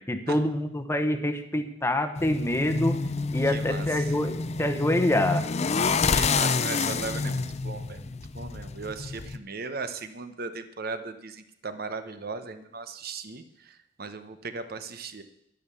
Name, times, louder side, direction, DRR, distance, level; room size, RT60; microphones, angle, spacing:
voice 1, 0.1-3.0 3.3-5.4, left 1 dB, 15° left, 8 dB, 1.0 m, -26 dB
sound 1, 2.2-9.4, left 4 dB, 35° left, 0.5 m, -28 dB
voice 2, 3.5-4.1 6.1-15.2, right 4 dB, 55° right, 10 dB, 1.0 m, -37 dB
10.5 x 10.5 x 7.0 m, 0.78 s
head